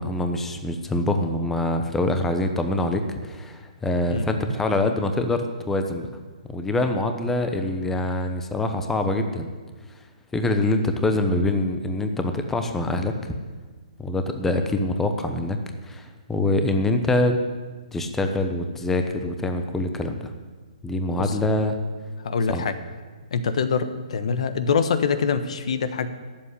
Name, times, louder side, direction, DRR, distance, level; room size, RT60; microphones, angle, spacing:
voice 1, 0.0-6.1 6.5-9.5 10.3-13.3 14.0-15.6 15.8-17.4 17.9-20.3 20.8-21.8 22.5-22.6, left 2 dB, 5° left, 6 dB, 0.9 m, -24 dB
voice 2, 22.2-22.7 23.3-26.1, left 5 dB, 60° left, 11 dB, 1.2 m, -24 dB
13.5 x 7.6 x 9.9 m, 1.4 s
hypercardioid pair, 145°, 4 cm